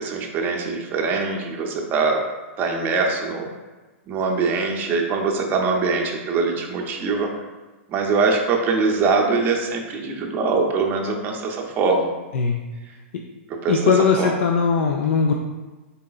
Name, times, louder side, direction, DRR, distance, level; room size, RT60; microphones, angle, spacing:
voice 1, 0.0-2.2 2.6-3.5 4.1-7.3 7.9-12.1 13.6-13.8 14.2-14.3, right 4 dB, 30° right, 1 dB, 0.6 m, -22 dB
voice 2, 13.7-15.3, left 5 dB, 70° left, 1 dB, 0.4 m, -19 dB
4.0 x 3.7 x 2.3 m, 1.2 s
hypercardioid pair, 130°, 7 cm